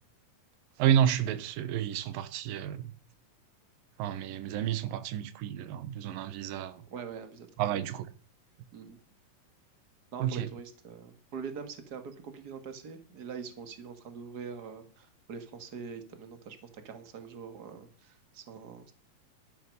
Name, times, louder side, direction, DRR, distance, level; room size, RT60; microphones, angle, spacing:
voice 1, 0.8-2.9 4.0-6.8 7.6-8.1 10.2-10.5, right 10 dB, 80° right, 2.7 m, -30 dB
voice 2, 6.8-7.8 8.7-9.0 10.1-18.9, right 6 dB, 40° right, 1.5 m, -43 dB
12.5 x 9.6 x 5.3 m
omnidirectional pair, 4.2 m